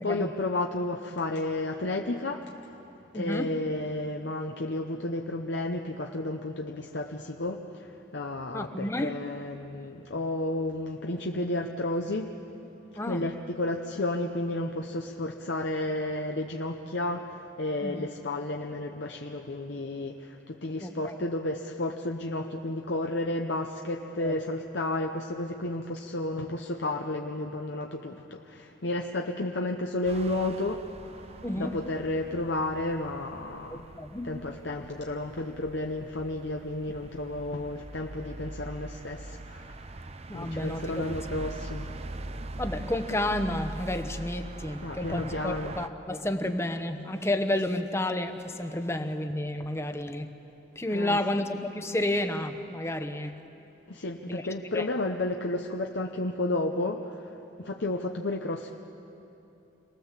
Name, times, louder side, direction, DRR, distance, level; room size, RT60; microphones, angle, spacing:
voice 1, 0.0-2.5 3.1-12.3 13.1-30.8 31.6-33.9 34.2-40.0 40.3-41.9 44.8-45.7 50.9-51.2 53.9-58.7, left 2 dB, 65° left, 2 dB, 0.9 m, -32 dB
voice 2, 3.1-3.5 8.5-9.1 13.0-13.3 17.8-18.0 20.8-21.1 24.2-24.3 31.4-31.8 33.7-34.3 40.3-41.1 42.6-50.3 50.8-53.4 54.3-54.5 54.7-54.9, left 1 dB, 15° left, 7 dB, 0.9 m, -31 dB
sound 1, 30.0-45.9, right 2 dB, 30° right, 0.6 m, -42 dB
27.0 x 19.5 x 7.4 m, 2.9 s
head